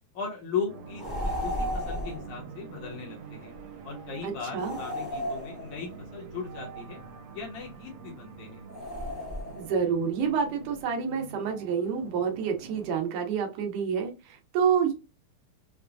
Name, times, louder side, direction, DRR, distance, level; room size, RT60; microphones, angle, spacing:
voice 1, 0.1-3.5 3.8-7.0 7.3-8.6, left 5 dB, 70° left, -1 dB, 2.3 m, -37 dB
sound 1, 0.7-13.0, right 5 dB, 70° right, 1.9 m, -46 dB
sound 2, 1.0-2.3 4.6-6.0 8.7-9.8, left 1 dB, 15° left, 1.0 m, -34 dB
voice 2, 4.2-4.8 9.6-14.9, right 6 dB, 90° right, 3 dB, 2.5 m, -28 dB
6.0 x 2.2 x 2.5 m, 0.28 s
omnidirectional pair, 3.5 m